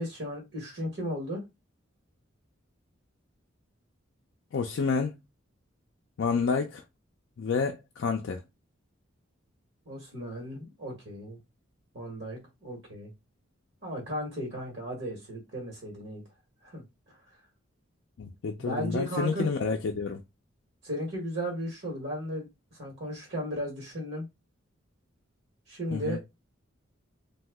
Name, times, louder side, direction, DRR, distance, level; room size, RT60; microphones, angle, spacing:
voice 1, 0.0-1.4 9.9-11.4 11.9-13.1 13.8-16.2 16.6-16.8 18.6-19.5 20.8-22.5 22.8-24.2 25.7-26.2, equal, 60° right, 1.1 m, -35 dB
voice 2, 4.5-5.1 6.2-6.8 7.4-8.4 18.2-20.2 25.9-26.2, left 5 dB, 65° left, 0.4 m, -29 dB
2.8 x 2.3 x 3.4 m
head